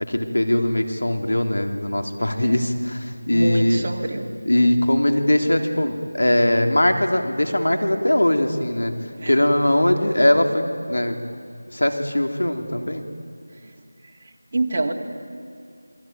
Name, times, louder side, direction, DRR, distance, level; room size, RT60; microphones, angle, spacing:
voice 1, 0.1-3.9 4.4-8.9 9.3-11.2 11.7-13.0, left 1 dB, 90° left, 5 dB, 3.3 m, -20 dB
voice 2, 3.3-4.3 9.2-9.5 14.5-14.9, right 2 dB, 35° right, 0 dB, 2.6 m, -26 dB
28.0 x 22.5 x 9.5 m, 2.4 s
figure-of-eight pair, 175°, 0 cm